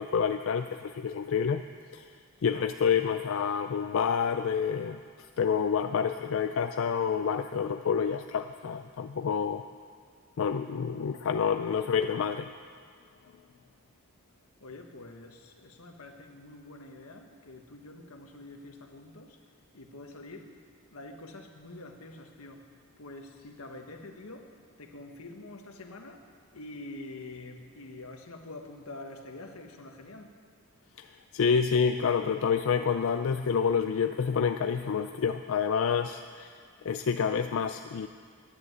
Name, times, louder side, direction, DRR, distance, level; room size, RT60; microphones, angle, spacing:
voice 1, 0.0-1.6 1.9-2.0 2.4-5.0 5.4-9.6 10.4-12.5 31.0-31.1 31.3-36.5 36.8-38.1, left 6 dB, 65° left, 8 dB, 0.4 m, -28 dB
voice 2, 14.6-19.4 19.7-20.6 20.9-30.4, left 2 dB, 90° left, 4 dB, 1.3 m, -46 dB
11.0 x 10.0 x 7.7 m, 2.2 s
head